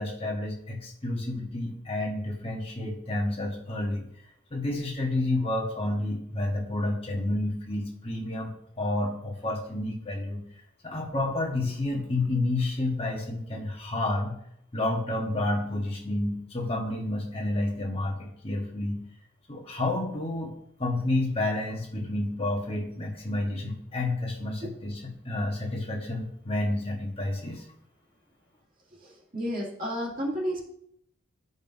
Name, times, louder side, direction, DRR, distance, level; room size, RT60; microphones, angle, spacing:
voice 1, 0.0-4.0 4.5-10.4 10.8-14.3 14.7-19.0 19.5-20.5 20.8-27.6, left 2 dB, 30° left, -1 dB, 1.3 m, -30 dB
voice 2, 29.0-30.6, equal, 40° right, -3 dB, 2.3 m, -32 dB
13.0 x 5.4 x 2.7 m, 0.71 s
head